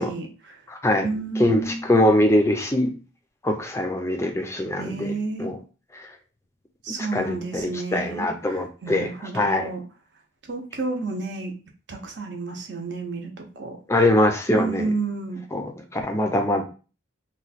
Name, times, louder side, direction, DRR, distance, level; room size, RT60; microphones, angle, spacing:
voice 1, 0.0-0.6 1.0-1.9 4.8-5.5 6.8-9.8 10.5-11.5 11.9-13.8 14.5-15.4, right 3 dB, 60° right, 2 dB, 0.7 m, -31 dB
voice 2, 0.7-1.1 1.4-2.9 3.4-5.1 5.4-5.6 6.0-6.1 7.1-7.4 7.6-9.7 13.9-14.9 15.5-16.6, left 1 dB, 15° left, 4 dB, 0.5 m, -22 dB
3.0 x 2.3 x 4.0 m, 0.35 s
head